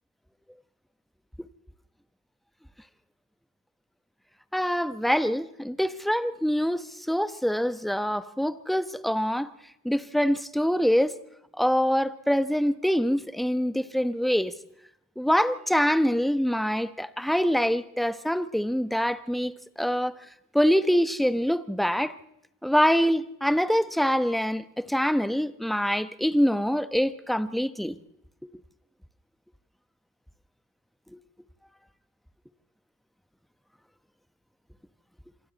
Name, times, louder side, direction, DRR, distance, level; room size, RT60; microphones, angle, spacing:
voice 1, 4.5-9.5 9.8-11.2 11.6-14.5 15.2-20.1 20.5-22.1 22.6-28.0 31.1-31.2, equal, ahead, 1.2 m, -25 dB
26.5 x 24.0 x 4.2 m
cardioid pair, 90°, 30 cm